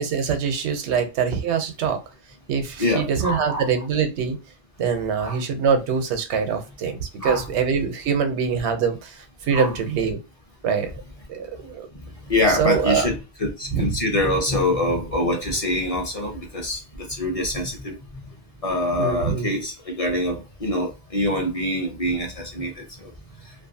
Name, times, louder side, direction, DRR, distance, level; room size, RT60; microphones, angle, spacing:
voice 1, 0.0-2.0 2.5-4.4 4.8-9.1 9.4-10.2 10.6-10.9 11.3-11.9 12.5-13.1 13.7-13.9 19.0-19.5, right 6 dB, 85° right, 0.9 m, -24 dB
voice 2, 2.8-3.7 5.2-5.4 7.2-7.4 9.5-9.7 11.9-18.0 18.6-23.1, left 1 dB, 40° left, 0.7 m, -25 dB
2.5 x 2.4 x 2.6 m
omnidirectional pair, 1.1 m